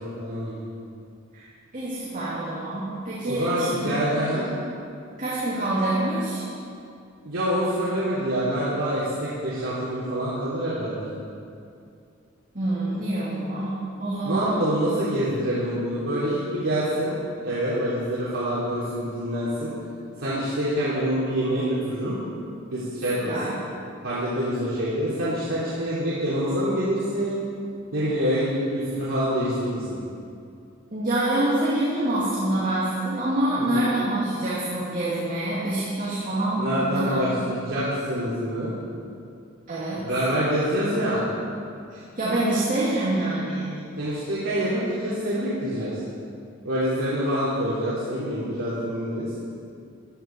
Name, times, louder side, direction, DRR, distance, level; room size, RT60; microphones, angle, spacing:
voice 1, 0.2-0.6 3.2-4.5 7.2-11.1 14.2-17.1 17.4-19.7 20.2-22.2 22.7-23.3 24.0-27.4 27.9-30.0 33.6-33.9 36.6-38.7 39.9-41.2 44.0-46.0 46.6-49.3, equal, 75° right, -10 dB, 3.0 m, -26 dB
voice 2, 1.7-4.1 4.3-4.5 5.2-6.4 12.5-14.7 23.0-23.5 30.9-37.2 39.7-40.1 41.9-43.8, right 1 dB, 40° right, -9 dB, 2.6 m, -26 dB
14.5 x 12.5 x 4.5 m, 2.5 s
head